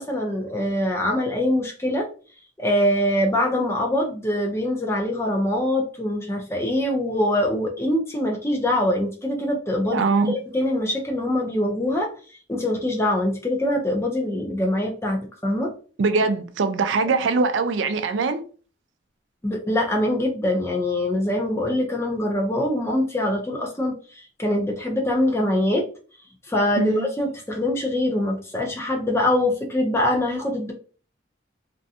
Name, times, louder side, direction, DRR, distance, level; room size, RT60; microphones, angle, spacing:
voice 1, 0.0-2.1 2.6-12.1 12.5-15.7 19.4-25.9 26.5-30.7, left 1 dB, 15° left, 0.5 m, -23 dB
voice 2, 9.9-10.3 16.0-18.4 26.8-27.0, right 4 dB, 75° right, 0.4 m, -22 dB
2.5 x 2.2 x 2.7 m
head